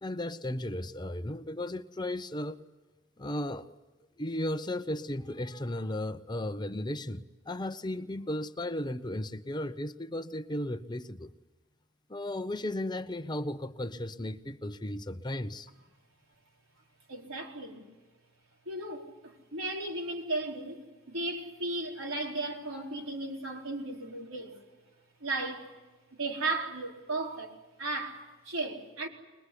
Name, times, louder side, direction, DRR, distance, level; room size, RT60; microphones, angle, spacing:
voice 1, 0.0-2.6 3.2-3.7 4.2-11.3 12.1-15.7, left 1 dB, 20° left, 0.7 m, -35 dB
voice 2, 17.1-17.8 18.7-24.6 25.2-25.7 26.1-27.5 27.8-29.1, right 2 dB, 80° right, 4.5 m, -35 dB
22.5 x 21.5 x 9.9 m
head